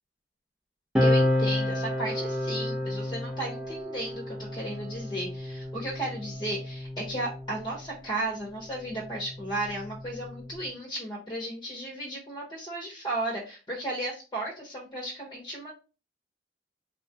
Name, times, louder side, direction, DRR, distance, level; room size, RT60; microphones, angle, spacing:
voice 1, 1.0-15.7, right 1 dB, 25° left, -2 dB, 0.9 m, -34 dB
sound 1, 1.0-7.9 8.8-10.7, left 1 dB, 5° right, 0.7 m, -30 dB
4.1 x 2.4 x 2.7 m, 0.32 s
head